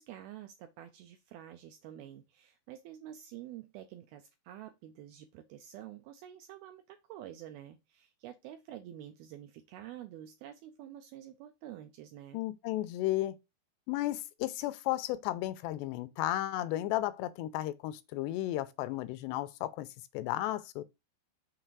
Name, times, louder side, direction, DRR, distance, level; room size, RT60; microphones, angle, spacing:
voice 1, 0.0-12.4, right 11 dB, 85° right, 2.2 m, -48 dB
voice 2, 12.3-13.4 13.9-19.9 20.1-20.8, left 15 dB, 85° left, 2.6 m, -34 dB
6.7 x 4.0 x 4.6 m
omnidirectional pair, 4.9 m